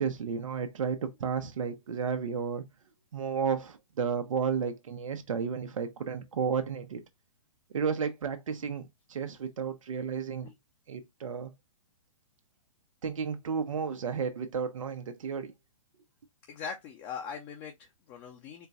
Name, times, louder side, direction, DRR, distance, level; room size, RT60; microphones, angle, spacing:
voice 1, 0.0-2.6 3.1-7.0 7.7-10.5 10.9-11.5 13.0-15.5, right 6 dB, 75° right, 1.0 m, -32 dB
voice 2, 16.5-18.7, left 6 dB, 25° left, 0.8 m, -41 dB
4.4 x 2.3 x 4.0 m
hypercardioid pair, 145°, 17 cm